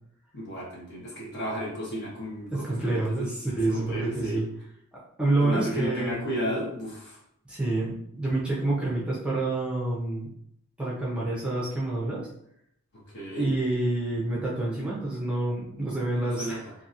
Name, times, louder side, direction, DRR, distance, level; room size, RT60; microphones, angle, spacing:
voice 1, 0.3-3.3 3.7-4.4 5.4-7.2 13.1-13.5 16.2-16.6, equal, 50° left, -5 dB, 1.0 m, -33 dB
voice 2, 2.5-4.5 5.2-6.1 7.5-10.3 10.8-12.2 13.3-16.6, right 2 dB, 5° right, -6 dB, 0.6 m, -28 dB
2.8 x 2.6 x 2.5 m, 0.72 s
head